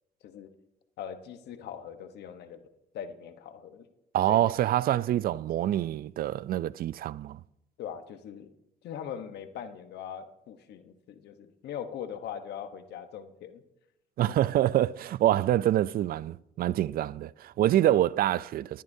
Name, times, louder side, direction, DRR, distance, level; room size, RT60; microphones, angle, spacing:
voice 1, 1.0-2.6 2.9-3.8 4.3-4.5 7.8-8.5 8.8-13.6 14.3-14.4, left 8 dB, 75° left, 1.1 m, -41 dB
voice 2, 4.1-7.4 14.2-18.8, right 13 dB, 60° right, 0.4 m, -26 dB
19.5 x 13.0 x 2.7 m
cardioid pair, 90°, 17 cm